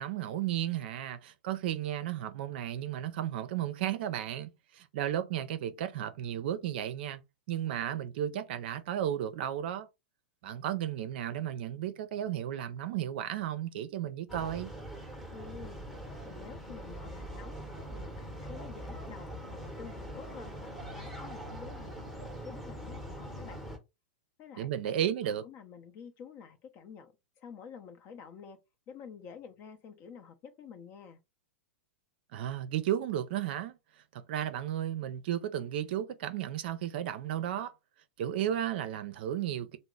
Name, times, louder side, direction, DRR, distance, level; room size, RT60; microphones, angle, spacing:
voice 1, 0.0-7.2 7.5-9.9 10.4-14.7 24.6-25.4 32.3-33.8 34.1-37.7 38.2-39.8, right 11 dB, 60° right, 0.5 m, -34 dB
sound 1, 14.3-23.8, equal, ahead, 0.8 m, -42 dB
voice 2, 15.3-15.8 16.2-17.6 17.9-20.5 20.9-22.0 22.4-23.6 24.4-28.6 28.9-31.2, left 7 dB, 40° left, 0.7 m, -49 dB
2.9 x 2.0 x 3.7 m
hypercardioid pair, 105°, 6 cm